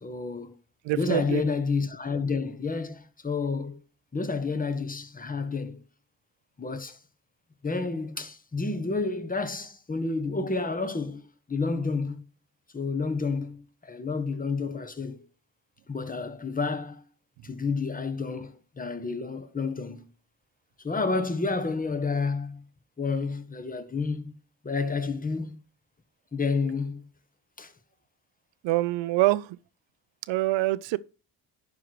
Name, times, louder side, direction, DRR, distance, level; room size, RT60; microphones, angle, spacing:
voice 1, 0.0-0.5 0.9-3.8 4.1-5.8 6.6-7.0 7.6-11.2 11.5-12.2 12.7-15.3 15.9-17.0 17.4-20.0 20.8-22.6 23.0-24.4 24.6-25.6 26.3-27.0 27.6-27.7, left 4 dB, 20° left, 1.5 m, -30 dB
voice 2, 0.8-1.4 28.6-29.6 30.3-31.0, right 18 dB, 70° right, 0.8 m, -25 dB
11.0 x 4.8 x 4.7 m
supercardioid pair, 80°, 45 cm